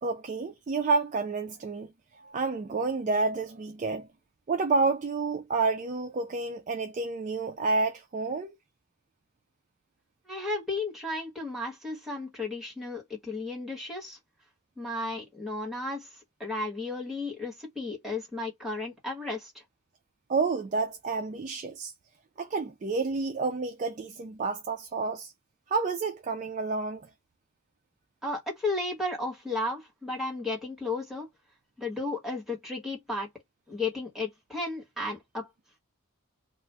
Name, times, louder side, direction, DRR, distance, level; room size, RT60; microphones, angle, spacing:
voice 1, 0.0-1.9 2.2-4.1 4.5-8.6 20.3-21.9 22.4-25.3 25.7-27.0, right 4 dB, 35° right, 0.3 m, -29 dB
voice 2, 10.3-14.2 14.8-16.1 16.4-19.5 28.2-31.3 31.8-33.3 33.7-35.5, left 2 dB, ahead, 1.3 m, -34 dB
2.4 x 2.3 x 3.3 m
head